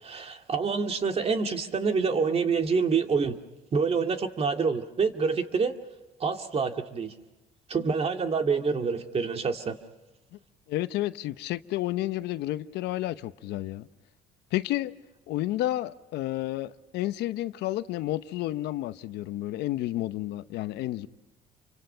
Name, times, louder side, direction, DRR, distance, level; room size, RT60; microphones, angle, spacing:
voice 1, 0.0-3.4 3.7-5.7 6.2-7.1 7.7-9.8, right 5 dB, 35° right, 2.2 m, -27 dB
voice 2, 10.7-13.9 14.5-14.9 15.3-21.1, left 15 dB, 85° left, 0.9 m, -31 dB
29.5 x 25.0 x 5.7 m
cardioid pair, 110°, 17 cm